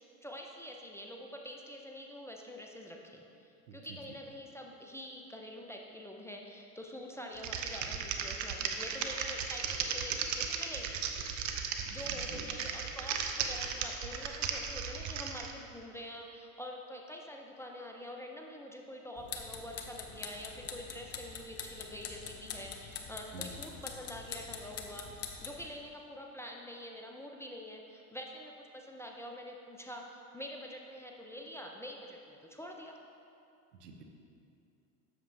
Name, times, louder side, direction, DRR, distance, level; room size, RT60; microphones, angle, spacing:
voice 1, 0.0-11.2 11.9-33.0, left 1 dB, 5° left, 0 dB, 0.5 m, -46 dB
Typing, 7.3-15.5, right 7 dB, 40° right, 0.7 m, -36 dB
voice 2, 11.9-12.5 23.3-23.6 33.8-34.0, right 2 dB, 85° right, 3 dB, 0.9 m, -48 dB
sound 1, 19.2-25.6, left 6 dB, 35° left, 0.8 m, -44 dB
7.9 x 6.7 x 3.3 m, 2.6 s
hypercardioid pair, 85°, 45 cm